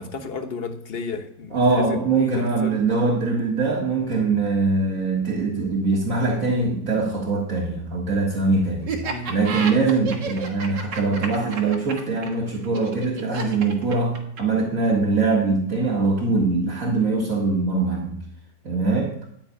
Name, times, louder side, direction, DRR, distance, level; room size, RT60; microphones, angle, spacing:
voice 1, 0.0-2.8 9.0-9.3 10.0-10.2, left 3 dB, 40° left, 6 dB, 1.3 m, -33 dB
voice 2, 1.5-8.9 9.3-18.1 18.6-19.2, right 3 dB, 50° right, -2 dB, 2.3 m, -22 dB
Laughter, 8.9-14.6, right 5 dB, 85° right, 2.3 m, -31 dB
12.5 x 5.9 x 8.6 m, 0.69 s
omnidirectional pair, 1.8 m